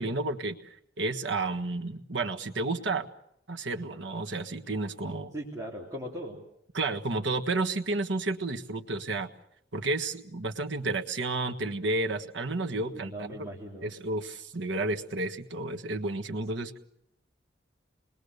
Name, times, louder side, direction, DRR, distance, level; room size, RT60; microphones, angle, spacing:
voice 1, 0.0-3.1 3.5-5.3 6.7-9.3 9.7-13.5 13.8-16.8, right 2 dB, 90° right, 5 dB, 1.6 m, -31 dB
voice 2, 5.3-6.4 12.9-13.9, right 1 dB, 20° right, -5 dB, 3.5 m, -39 dB
28.0 x 21.0 x 6.7 m, 0.75 s
head